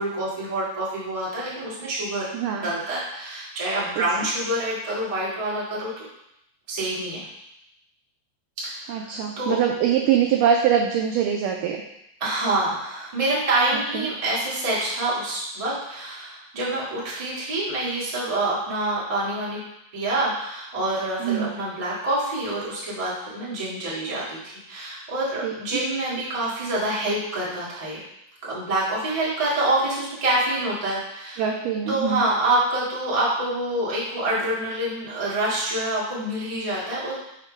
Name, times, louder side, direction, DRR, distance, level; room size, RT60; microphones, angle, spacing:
voice 1, 0.0-2.3 2.6-6.0 6.7-7.2 8.6-9.5 12.2-19.6 19.9-28.0 28.4-31.4 31.9-37.1, right 2 dB, 60° right, -8 dB, 0.3 m, -26 dB
voice 2, 2.3-2.6 4.0-4.1 8.9-11.8 13.9-14.1 21.2-21.5 25.4-25.5 31.4-32.2, right 8 dB, 85° right, 1 dB, 1.8 m, -23 dB
6.3 x 2.9 x 5.5 m, 0.82 s
omnidirectional pair, 4.4 m